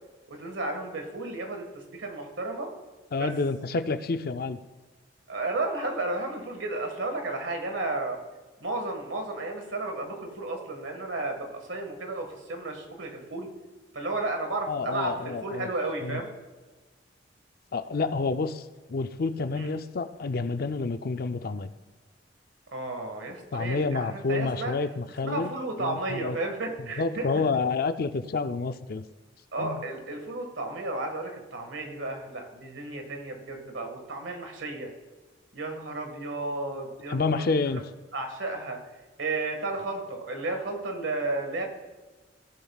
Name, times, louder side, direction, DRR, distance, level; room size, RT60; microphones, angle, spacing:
voice 1, 0.3-2.7 3.1-3.3 5.3-8.2 8.6-13.5 13.9-16.3 19.5-19.7 22.7-24.8 25.2-27.4 29.5-34.9 35.5-37.8 38.1-38.8 39.2-41.7, right 2 dB, 80° right, 4 dB, 1.7 m, -33 dB
voice 2, 3.1-4.6 14.7-15.7 16.0-16.2 17.7-21.7 23.5-25.5 25.8-26.4 27.0-29.1 29.6-29.8 37.1-37.8, left 4 dB, 50° left, 11 dB, 0.5 m, -29 dB
16.5 x 7.2 x 2.4 m, 1.2 s
head